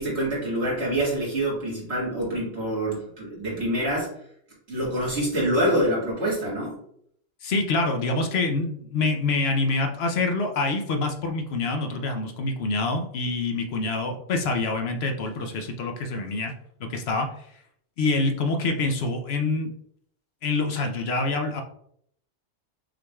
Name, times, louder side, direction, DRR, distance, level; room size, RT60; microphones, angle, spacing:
voice 1, 0.0-4.1 4.7-6.8, right 1 dB, 65° right, -5 dB, 2.0 m, -26 dB
voice 2, 7.4-16.5 16.8-17.3 18.0-19.7 20.4-21.6, left 3 dB, 65° left, 5 dB, 0.9 m, -26 dB
6.0 x 3.3 x 2.3 m, 0.67 s
omnidirectional pair, 1.2 m